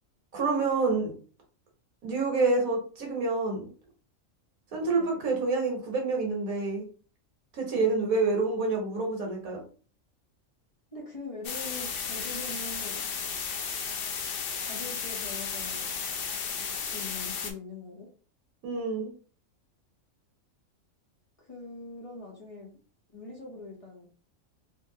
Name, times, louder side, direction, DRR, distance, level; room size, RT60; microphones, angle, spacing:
voice 1, 0.3-1.1 2.0-3.7 4.7-6.8 7.5-9.6 18.6-19.1, right 3 dB, 85° right, 0 dB, 1.5 m, -27 dB
voice 2, 5.0-5.3 7.7-8.0 10.9-13.1 14.6-15.9 16.8-18.1 21.4-22.7 23.1-24.1, left 3 dB, 30° left, -3 dB, 0.8 m, -42 dB
sound 1, 11.4-17.5, left 6 dB, 65° left, 0.6 m, -34 dB
3.6 x 2.6 x 2.7 m, 0.40 s
omnidirectional pair, 1.4 m